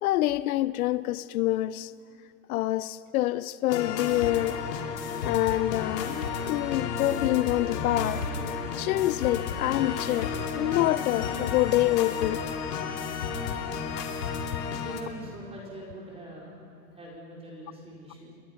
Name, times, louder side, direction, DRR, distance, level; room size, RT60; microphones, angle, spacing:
voice 1, 0.0-1.9 2.5-4.6 5.2-8.3 8.8-12.4, left 15 dB, 65° left, 0.6 m, -26 dB
sound 1, 3.7-15.0, left 6 dB, 85° left, 2.8 m, -32 dB
voice 2, 14.8-16.5 16.9-18.3, right 1 dB, 10° right, 4.5 m, -43 dB
29.5 x 22.0 x 5.8 m
supercardioid pair, 140°, 47 cm